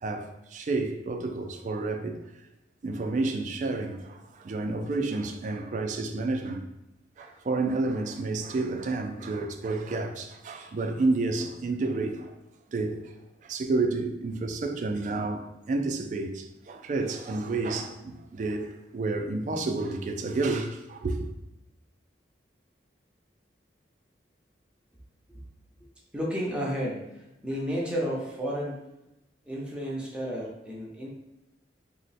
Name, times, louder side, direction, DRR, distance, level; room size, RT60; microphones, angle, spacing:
voice 1, 0.0-2.2 2.8-6.6 7.2-12.3 12.7-13.1 13.4-21.2, right 3 dB, 40° right, 0.3 m, -30 dB
voice 2, 26.1-28.8 29.5-31.1, equal, 5° right, 0.6 m, -32 dB
3.0 x 2.1 x 4.0 m
head